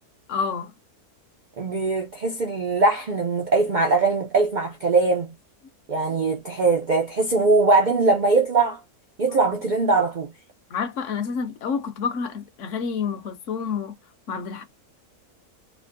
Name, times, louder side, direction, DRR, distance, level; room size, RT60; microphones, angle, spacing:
voice 1, 0.3-0.7 10.7-13.9 14.3-14.6, left 6 dB, 60° left, 0.9 m, -28 dB
voice 2, 1.6-5.3 5.9-8.8 9.2-10.3, right 3 dB, 90° right, 0.4 m, -21 dB
3.3 x 2.6 x 2.5 m
omnidirectional pair, 1.6 m